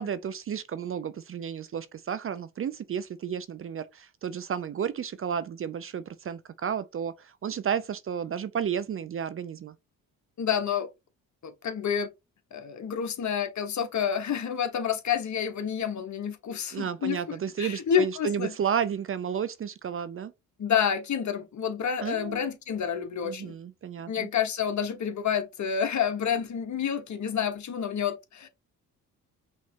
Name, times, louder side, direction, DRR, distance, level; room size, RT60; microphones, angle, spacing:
voice 1, 0.0-9.7 16.7-20.3 22.0-22.4 23.2-24.3, right 8 dB, 35° right, 0.5 m, -32 dB
voice 2, 10.4-10.9 11.4-12.1 12.5-18.5 20.6-23.5 24.1-28.5, left 8 dB, 50° left, 1.2 m, -29 dB
5.6 x 3.1 x 2.9 m
cardioid pair, 80°, 36 cm